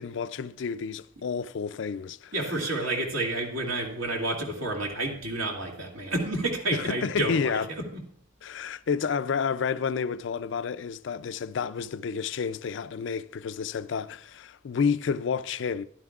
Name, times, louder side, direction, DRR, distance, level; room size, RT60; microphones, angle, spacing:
voice 1, 0.0-2.5 6.7-7.7 8.4-15.8, left 6 dB, 60° left, 0.4 m, -30 dB
voice 2, 2.3-7.6 7.9-8.0, right 2 dB, 80° right, 2.4 m, -30 dB
14.5 x 11.0 x 2.4 m
head